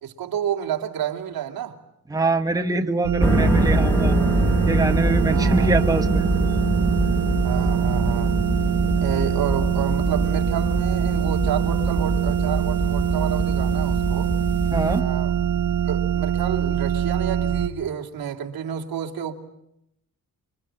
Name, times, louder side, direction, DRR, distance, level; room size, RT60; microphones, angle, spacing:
voice 1, 0.0-1.8 5.3-5.9 7.4-8.4 9.0-14.3 14.9-15.3 15.8-19.3, right 9 dB, 90° right, 2.9 m, -30 dB
voice 2, 2.1-4.2 4.7-6.3 14.7-15.1, right 3 dB, 10° right, 1.3 m, -23 dB
sound 1, 3.0-17.7, right 9 dB, 55° right, 1.4 m, -23 dB
sound 2, 3.2-15.0, equal, 5° left, 2.2 m, -25 dB
27.5 x 24.5 x 8.9 m
wide cardioid pair, 170°, 35 cm